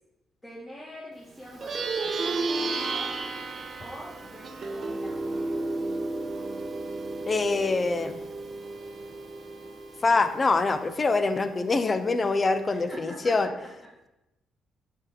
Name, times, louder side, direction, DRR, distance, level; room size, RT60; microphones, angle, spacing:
voice 1, 0.4-3.2 3.8-5.6 12.7-13.7, equal, 10° left, -6 dB, 1.4 m, -44 dB
Plucked string instrument, 1.5-11.2, right 3 dB, 45° right, 0.8 m, -33 dB
voice 2, 7.3-8.2 10.0-13.5, left 3 dB, 30° left, 10 dB, 0.5 m, -24 dB
5.3 x 4.2 x 4.9 m, 0.96 s
cardioid pair, 90°, 0 cm